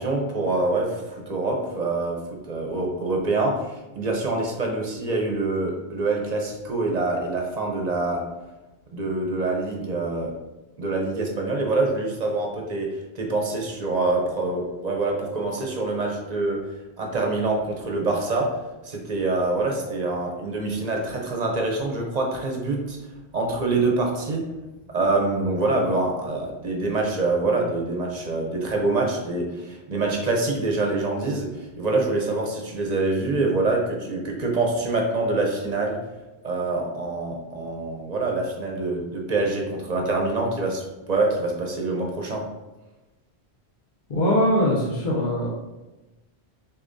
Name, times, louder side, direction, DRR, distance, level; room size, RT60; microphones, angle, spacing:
voice 1, 0.0-2.2 2.5-8.2 8.9-10.3 10.8-12.9 13.2-16.6 17.0-18.5 18.8-23.0 23.3-24.4 24.9-31.5 31.8-36.0 36.4-42.5, right 2 dB, 45° right, 0 dB, 0.7 m, -25 dB
voice 2, 44.1-45.5, equal, 50° left, -6 dB, 0.8 m, -21 dB
6.5 x 2.3 x 2.6 m, 1.1 s
omnidirectional pair, 1.1 m